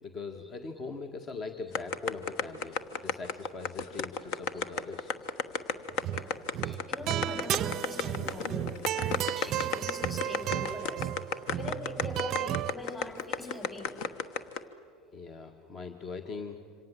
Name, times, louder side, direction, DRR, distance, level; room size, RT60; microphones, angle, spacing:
voice 1, 0.0-2.7 3.0-5.1 8.2-8.7 15.1-16.6, left 4 dB, 35° left, 7 dB, 1.7 m, -41 dB
sound 1, 1.7-14.6, left 6 dB, 55° left, 1.2 m, -32 dB
sound 2, 5.9-6.3 6.5-12.7, right 12 dB, 45° right, 0.5 m, -33 dB
voice 2, 6.1-11.1 11.6-13.9, left 1 dB, 20° left, 5 dB, 5.5 m, -42 dB
27.0 x 26.0 x 7.6 m, 2.4 s
figure-of-eight pair, 75°, 0 cm